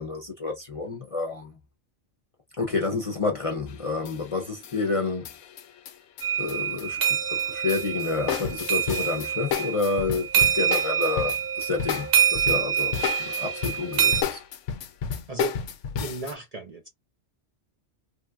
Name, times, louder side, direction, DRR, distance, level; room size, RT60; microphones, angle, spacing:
voice 1, 0.0-1.6 2.6-5.3 6.4-7.0 7.3-14.4, left 3 dB, 35° left, 0.6 m, -29 dB
sound 1, 3.7-4.3 4.6-7.1 7.4-16.3, left 8 dB, 85° left, 0.9 m, -32 dB
sound 2, 6.2-14.2, right 8 dB, 65° right, 0.9 m, -26 dB
voice 2, 15.3-15.6 16.0-16.9, right 3 dB, 40° right, 0.6 m, -34 dB
3.4 x 2.4 x 2.3 m
omnidirectional pair, 1.2 m